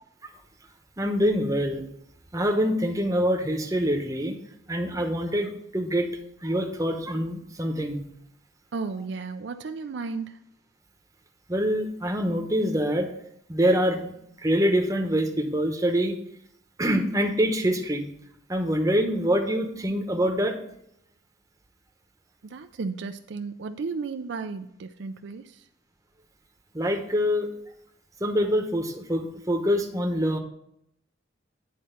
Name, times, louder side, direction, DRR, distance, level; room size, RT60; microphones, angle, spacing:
voice 1, 1.0-1.8 2.3-4.4 4.7-6.1 6.4-8.0 11.5-13.1 13.5-14.1 14.4-16.2 16.8-18.1 18.5-20.5 26.7-27.5 28.2-30.4, equal, 15° right, 4 dB, 0.9 m, -25 dB
voice 2, 8.7-10.4 22.4-25.7, right 4 dB, 65° right, 8 dB, 0.4 m, -34 dB
10.0 x 4.2 x 5.6 m, 0.74 s
head